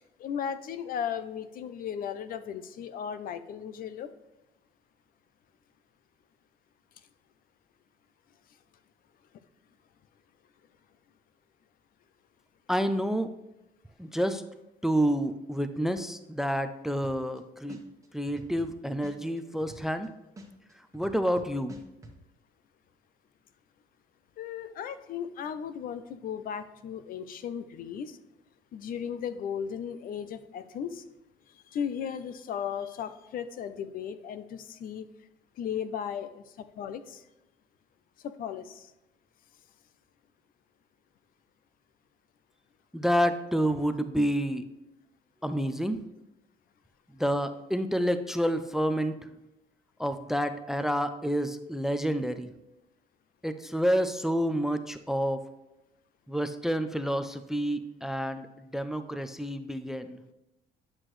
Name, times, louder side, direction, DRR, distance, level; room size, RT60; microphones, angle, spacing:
voice 1, 0.2-4.1 24.4-28.2 28.7-31.0 31.5-35.1 35.6-36.4 36.8-37.2 38.2-38.9, left 8 dB, 60° left, 12 dB, 0.5 m, -36 dB
voice 2, 12.7-13.3 14.0-14.4 14.8-17.8 18.1-20.1 20.9-21.8 42.9-44.6 45.4-46.0 47.1-49.3 50.0-52.5 53.4-55.5 56.3-60.2, equal, ahead, 10 dB, 0.4 m, -29 dB
sound 1, 17.0-17.4 17.7-20.1 20.4-22.2, right 1 dB, 20° right, 1.2 m, -48 dB
9.7 x 6.1 x 3.2 m, 0.93 s
cardioid pair, 110°, 17 cm